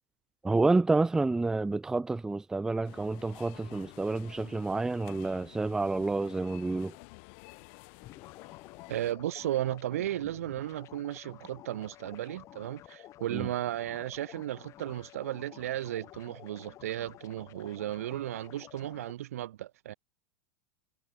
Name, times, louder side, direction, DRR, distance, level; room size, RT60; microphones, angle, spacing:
voice 1, 0.4-6.9 13.3-13.5, right 3 dB, 5° right, 0.4 m, -29 dB
sound 1, 2.8-9.1, left 39 dB, 60° left, 1.7 m, -51 dB
sound 2, 8.0-19.1, left 14 dB, 40° left, 1.4 m, -51 dB
voice 2, 8.9-19.9, right 13 dB, 80° right, 1.6 m, -35 dB
hypercardioid pair, 110°, 8 cm